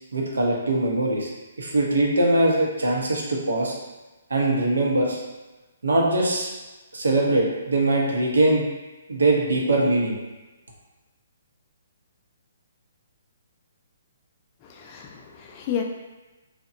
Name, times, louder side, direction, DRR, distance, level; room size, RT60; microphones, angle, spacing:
voice 1, 0.1-1.3 1.6-3.7 4.3-5.2 5.8-6.5 6.9-8.7 9.1-10.2, right 2 dB, 75° right, -2 dB, 0.6 m, -22 dB
voice 2, 14.6-15.8, left 8 dB, 30° left, 1 dB, 0.3 m, -31 dB
2.7 x 2.1 x 2.5 m, 1.1 s
figure-of-eight pair, 130°, 0 cm